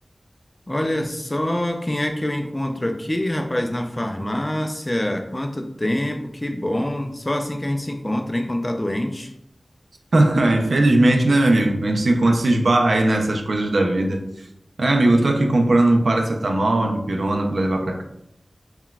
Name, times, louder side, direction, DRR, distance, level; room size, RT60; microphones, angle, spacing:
voice 1, 0.7-9.3 15.1-15.2, left 1 dB, 25° left, 0.4 m, -25 dB
voice 2, 10.1-14.2 14.8-18.0, right 1 dB, 85° right, 0.5 m, -18 dB
5.7 x 2.2 x 2.3 m
wide cardioid pair, 60°, 0 cm